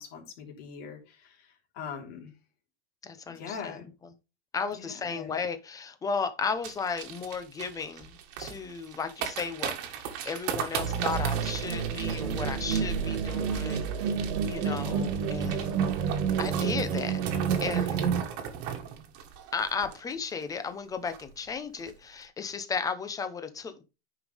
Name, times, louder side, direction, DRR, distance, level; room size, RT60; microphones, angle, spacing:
voice 1, 0.0-2.3 3.3-3.9 4.8-5.3, left 6 dB, 60° left, 3.3 m, -42 dB
voice 2, 3.0-3.8 4.5-14.2 14.5-15.8 16.4-17.2 17.6-18.0 19.5-23.8, left 5 dB, 10° left, 0.6 m, -34 dB
sound 1, 6.6-20.4 20.7-20.8 21.1-21.4 21.8-21.9, right 8 dB, 40° right, 1.5 m, -38 dB
sound 2, 10.8-18.2, right 6 dB, 85° right, 1.8 m, -29 dB
9.7 x 5.4 x 3.4 m
supercardioid pair, 170°, 35 cm